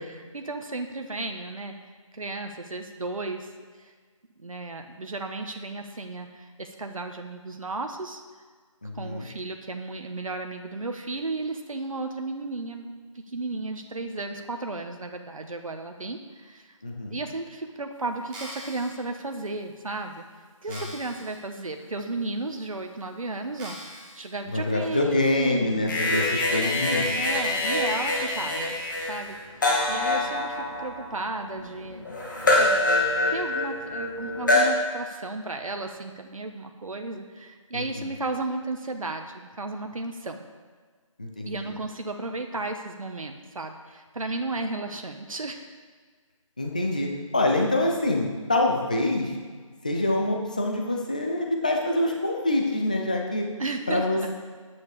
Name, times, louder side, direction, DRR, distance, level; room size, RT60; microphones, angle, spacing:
voice 1, 0.1-1.7 2.1-3.5 3.8-3.9 4.4-8.2 8.9-16.8 17.1-20.2 20.6-26.0 27.1-28.8 29.1-29.4 29.9-32.1 32.6-32.8 33.3-40.4 41.4-45.7 53.6-54.3, right 2 dB, 75° right, 4 dB, 1.3 m, -34 dB
voice 2, 8.8-9.3 16.8-17.2 20.7-20.8 24.5-27.1 37.7-38.1 41.2-41.7 46.6-49.3 49.8-53.5 53.9-54.4, left 2 dB, 15° left, 1 dB, 0.5 m, -26 dB
sound 1, 18.2-18.9 19.6-19.7 20.1-20.2 20.7-21.4 21.8-21.9 22.7-22.8 23.6-24.3 24.8-24.9, equal, 5° right, 1.3 m, -42 dB
sound 2, 25.9-34.7, left 2 dB, 35° left, 2.4 m, -25 dB
11.0 x 9.3 x 4.9 m, 1.5 s
figure-of-eight pair, 170°, 18 cm